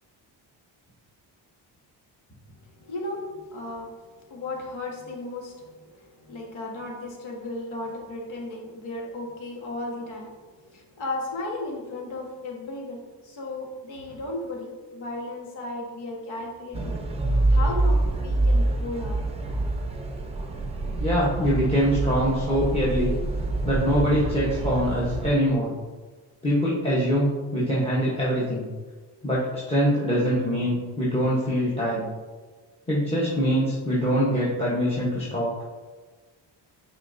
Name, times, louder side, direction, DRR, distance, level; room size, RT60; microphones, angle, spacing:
voice 1, 2.5-16.9 17.5-19.3 21.4-21.6, left 2 dB, 85° left, -1 dB, 1.6 m, -35 dB
sound 1, 16.7-25.3, right 2 dB, 15° right, 0.5 m, -26 dB
voice 2, 21.0-23.1 23.6-25.7 26.4-28.7 29.2-32.1 32.9-35.5, equal, 15° left, -7 dB, 0.9 m, -24 dB
9.7 x 4.4 x 2.6 m, 1.4 s
wide cardioid pair, 180°, 45 cm